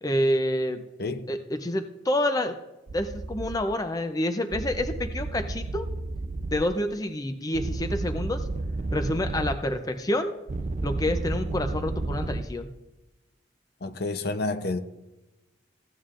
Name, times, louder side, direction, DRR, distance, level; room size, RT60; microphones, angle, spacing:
voice 1, 0.0-0.8 1.3-2.6 2.9-5.9 6.5-8.5 8.9-10.3 10.8-12.7, left 1 dB, 20° left, 0.5 m, -28 dB
sound 1, 2.9-3.6 4.5-6.6 7.5-9.6 10.5-12.4, right 2 dB, 35° right, 0.4 m, -31 dB
voice 2, 13.8-14.8, left 2 dB, 55° left, 0.6 m, -29 dB
15.5 x 9.3 x 2.5 m
head